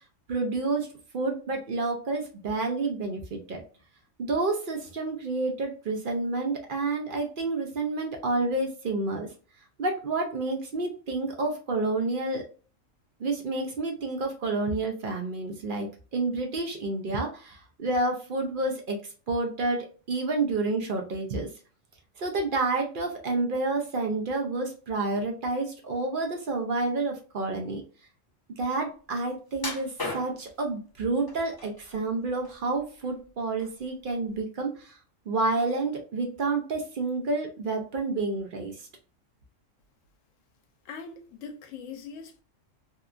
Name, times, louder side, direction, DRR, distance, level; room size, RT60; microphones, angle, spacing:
voice 1, 0.3-0.9 1.1-3.6 4.2-9.3 9.8-12.5 13.2-19.0 19.3-21.5 22.2-27.8 28.6-35.0 35.3-38.8, right 3 dB, 55° right, 0.6 m, -29 dB
sound 1, 29.6-30.6 31.3-31.9 32.3-33.3 33.6-33.8 34.3-34.4, left 2 dB, 30° left, 0.4 m, -36 dB
voice 2, 40.8-42.4, left 5 dB, 80° left, 1.0 m, -41 dB
2.8 x 2.2 x 2.4 m
omnidirectional pair, 1.3 m